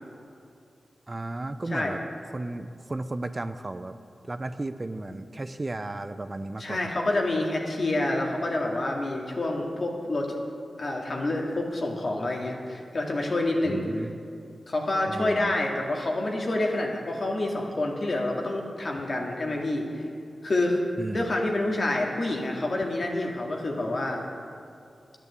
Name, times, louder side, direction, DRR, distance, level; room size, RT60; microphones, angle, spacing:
voice 1, 1.1-2.0 2.3-3.9 4.3-6.8 13.7-14.2 15.1-15.5 21.0-21.3, right 2 dB, 35° right, 10 dB, 0.6 m, -34 dB
voice 2, 6.6-10.3 10.8-13.8 14.7-20.0 20.4-20.8 21.1-24.2, left 2 dB, 60° left, 0 dB, 2.1 m, -28 dB
10.5 x 9.0 x 8.1 m, 2.5 s
cardioid pair, 45°, 0 cm